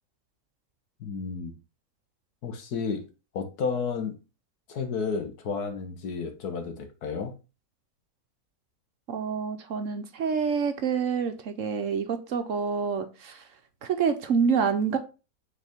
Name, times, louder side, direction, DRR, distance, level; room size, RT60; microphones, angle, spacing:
voice 1, 1.0-1.5 2.4-3.0 3.3-4.2 4.7-7.3, left 5 dB, 85° left, 1.6 m, -32 dB
voice 2, 9.1-13.5 13.8-15.0, right 6 dB, 60° right, 1.1 m, -27 dB
6.5 x 4.1 x 3.5 m
omnidirectional pair, 1.6 m